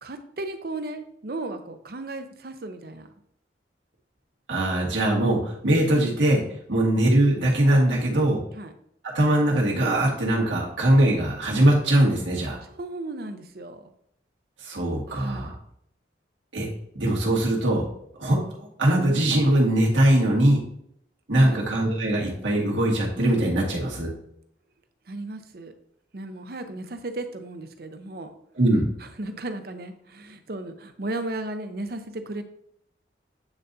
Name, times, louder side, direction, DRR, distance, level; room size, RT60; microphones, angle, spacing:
voice 1, 0.0-3.1 8.5-8.7 12.7-13.9 15.1-15.6 21.4-21.6 25.1-25.7 26.1-28.3 29.0-32.4, right 2 dB, 55° right, 8 dB, 0.6 m, -35 dB
voice 2, 4.5-6.4 6.7-8.4 9.1-12.6 14.6-15.5 16.5-16.7 17.0-17.8 18.2-18.4 18.8-20.6 21.3-24.1 28.6-28.9, right 1 dB, 90° right, -2 dB, 1.8 m, -21 dB
8.9 x 4.0 x 2.7 m, 0.71 s
head